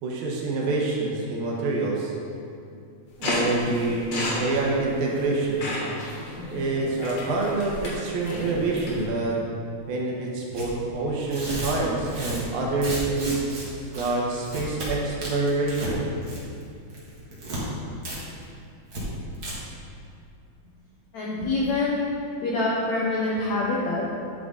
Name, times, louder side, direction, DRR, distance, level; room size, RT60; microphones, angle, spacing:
voice 1, 0.0-2.1 3.2-5.7 6.5-9.4 9.9-16.1, right 3 dB, 80° right, -2 dB, 2.9 m, -26 dB
sound 1, 3.2-9.0, left 1 dB, 50° left, 2.2 m, -32 dB
Tearing, 10.5-10.7 11.2-13.6 13.9-14.1 14.4-14.9 15.2-15.9 16.2-16.6 16.9-17.6 18.0-18.2 18.4-18.5 18.9-19.0 19.3-19.5, right 1 dB, 45° right, 1.3 m, -33 dB
voice 2, 21.1-22.1 22.4-24.1, left 2 dB, 75° left, -5 dB, 1.6 m, -25 dB
10.0 x 6.2 x 3.9 m, 2.4 s
omnidirectional pair, 4.3 m